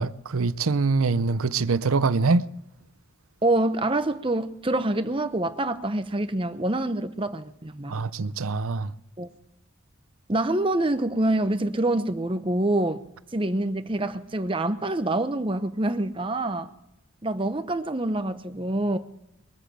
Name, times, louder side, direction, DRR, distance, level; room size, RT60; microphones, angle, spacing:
voice 1, 0.0-2.5 7.9-8.9, right 4 dB, 85° right, 0.7 m, -24 dB
voice 2, 3.4-8.0 9.2-9.3 10.3-13.0 13.3-16.7 17.2-19.0, right 2 dB, 25° right, 0.8 m, -26 dB
22.0 x 8.4 x 7.6 m
head